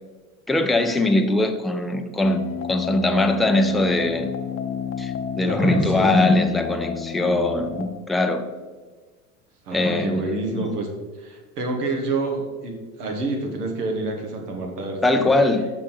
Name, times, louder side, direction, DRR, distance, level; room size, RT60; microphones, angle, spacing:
voice 1, 0.5-4.3 5.0-8.5 9.7-10.2 10.6-10.7 15.0-15.6, left 2 dB, ahead, 0.4 m, -21 dB
sound 1, 2.2-7.9, left 7 dB, 30° left, 0.7 m, -30 dB
voice 2, 5.4-6.2 9.6-10.9 11.2-15.3, right 2 dB, 80° right, 1.7 m, -28 dB
6.2 x 6.1 x 4.5 m
hypercardioid pair, 80°, 46 cm